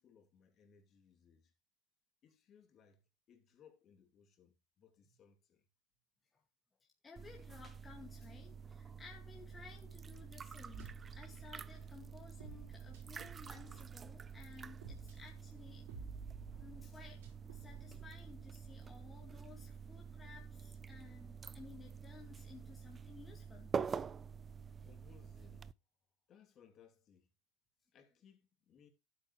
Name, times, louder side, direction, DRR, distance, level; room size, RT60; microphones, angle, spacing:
voice 1, 0.0-1.5 2.2-5.7 24.7-25.7 26.3-27.3 27.9-28.9, left 7 dB, 40° left, 3.1 m, -65 dB
voice 2, 7.0-15.9 16.6-23.7, left 5 dB, 20° left, 2.2 m, -57 dB
sound 1, 7.2-25.7, right 6 dB, 25° right, 0.5 m, -47 dB
sound 2, 10.7-18.1, right 5 dB, 75° right, 4.3 m, -54 dB
12.0 x 8.6 x 3.2 m
hypercardioid pair, 105°, 0 cm